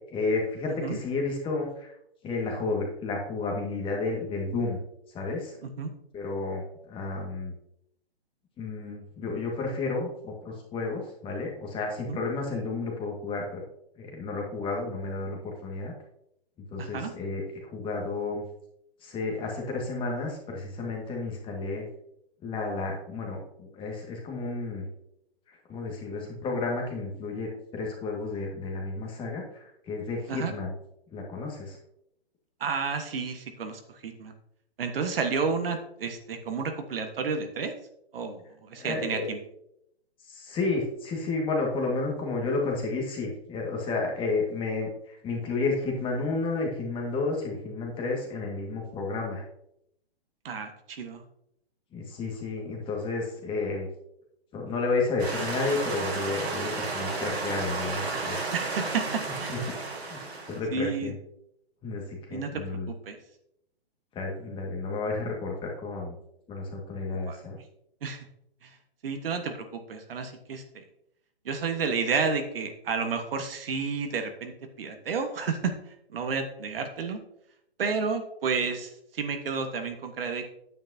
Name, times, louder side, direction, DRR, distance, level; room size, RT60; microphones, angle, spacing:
voice 1, 0.1-1.9 2.2-4.8 5.1-5.6 6.1-7.5 8.6-13.6 14.0-15.9 16.7-18.5 19.0-21.9 22.4-24.9 25.5-30.7 31.1-31.8 38.7-39.3 40.2-49.4 51.9-53.9 54.5-58.4 59.5-59.6 60.1-60.2 60.5-61.1 61.8-62.9 64.1-66.2 66.5-67.6, left 3 dB, 15° left, 0 dB, 1.8 m, -31 dB
voice 2, 16.8-17.1 30.3-30.5 32.6-34.3 34.8-37.7 38.1-39.4 50.4-51.2 58.5-59.5 60.7-61.1 62.3-62.6 63.0-63.2 67.3-67.4 68.0-68.3 68.6-68.7 69.0-70.8 71.4-75.7 76.1-77.2 77.8-80.5, right 5 dB, 60° right, 6 dB, 1.4 m, -31 dB
sound 1, 55.2-60.6, right 3 dB, 85° right, 2.7 m, -32 dB
9.4 x 8.7 x 2.8 m, 0.76 s
hypercardioid pair, 140°, 32 cm